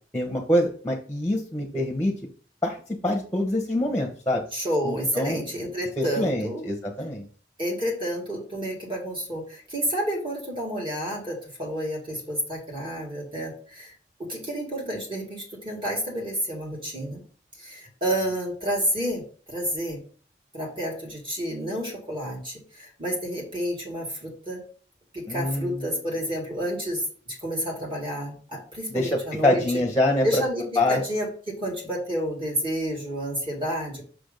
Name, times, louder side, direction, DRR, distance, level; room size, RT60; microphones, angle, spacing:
voice 1, 0.1-2.1 2.6-2.8 3.0-4.4 4.8-5.4 6.0-7.3 25.3-25.9 28.9-30.4 30.8-31.0, left 1 dB, 10° left, 1 dB, 0.9 m, -25 dB
voice 2, 4.5-6.6 7.6-17.2 17.6-19.2 19.5-20.0 20.5-24.6 25.1-29.6 30.2-34.0, equal, 30° right, -3 dB, 2.0 m, -30 dB
6.2 x 3.4 x 5.2 m, 0.42 s
head